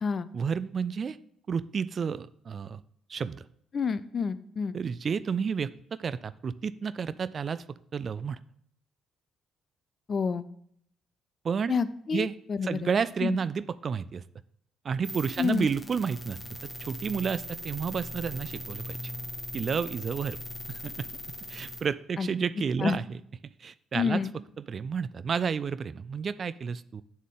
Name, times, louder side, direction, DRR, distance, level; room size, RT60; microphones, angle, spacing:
voice 1, 0.3-1.2 1.5-2.8 3.1-3.4 4.7-8.4 11.4-11.7 12.1-12.4 12.6-14.2 14.8-16.4 16.8-19.0 19.5-20.4 20.7-21.1 21.5-23.0 23.6-24.2 24.6-27.0, right 6 dB, 45° right, 16 dB, 0.3 m, -31 dB
voice 2, 3.7-4.8 10.1-10.5 11.7-12.9 13.2-13.4 15.4-15.7 22.2-22.3 22.8-23.0 23.9-24.3, left 5 dB, 40° left, 15 dB, 0.5 m, -28 dB
sound 1, 15.0-21.8, equal, 10° left, 1.4 m, -40 dB
8.5 x 7.2 x 3.6 m, 0.68 s
figure-of-eight pair, 45°, 0 cm